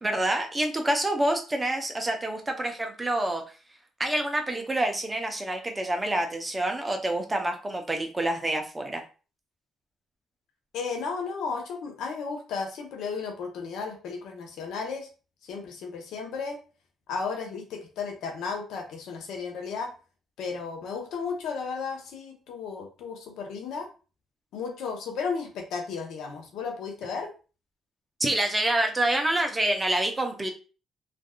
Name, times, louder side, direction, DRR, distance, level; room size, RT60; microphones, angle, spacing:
voice 1, 0.0-3.4 4.0-9.0 28.2-30.5, right 1 dB, 20° right, 4 dB, 0.7 m, -27 dB
voice 2, 10.7-15.1 15.4-16.6 17.1-19.9 20.4-23.9 24.5-27.3, left 5 dB, 85° left, 3 dB, 0.7 m, -34 dB
3.3 x 2.5 x 2.3 m, 0.35 s
cardioid pair, 90°, 0 cm